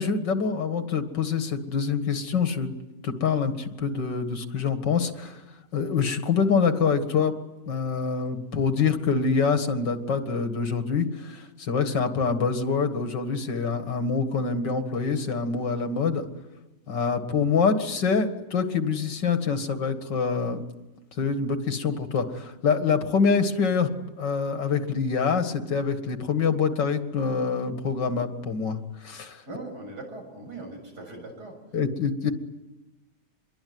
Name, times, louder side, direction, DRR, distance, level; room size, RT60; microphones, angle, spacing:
voice 1, 0.0-2.7 3.0-5.4 5.7-7.3 7.7-16.3 16.9-20.6 21.2-23.9 24.2-29.4 31.7-32.3, left 5 dB, 85° left, 7 dB, 2.5 m, -25 dB
voice 2, 29.5-31.6 32.2-32.3, right 2 dB, 65° right, 2 dB, 7.7 m, -40 dB
26.5 x 22.5 x 9.5 m, 1.1 s
omnidirectional pair, 1.9 m